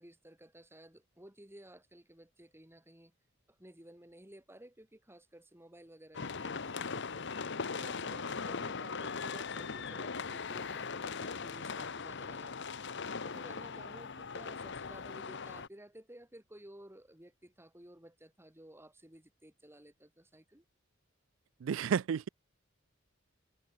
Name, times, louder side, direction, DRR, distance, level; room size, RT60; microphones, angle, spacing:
voice 1, 0.0-3.1 3.5-7.3 7.7-12.8 13.2-20.6, right 1 dB, 10° right, 4.0 m, -55 dB
sound 1, 6.1-15.7, left 5 dB, 60° left, 1.1 m, -39 dB
voice 2, 21.6-22.3, right 7 dB, 70° right, 0.4 m, -31 dB
head